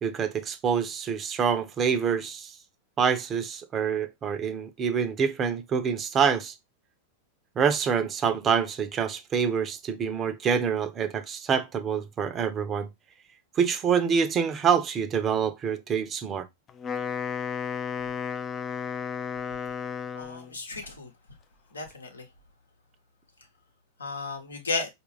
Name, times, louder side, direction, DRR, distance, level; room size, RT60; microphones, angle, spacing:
voice 1, 0.0-2.5 3.0-6.5 7.6-12.9 13.6-16.5, right 7 dB, 30° right, 0.6 m, -26 dB
Wind instrument woodwind instrument, 16.7-20.6, left 6 dB, 30° left, 0.3 m, -33 dB
voice 2, 20.2-21.1 21.7-22.2 24.0-24.9, left 4 dB, 85° left, 0.8 m, -33 dB
4.6 x 2.4 x 3.2 m
hypercardioid pair, 95°, 0 cm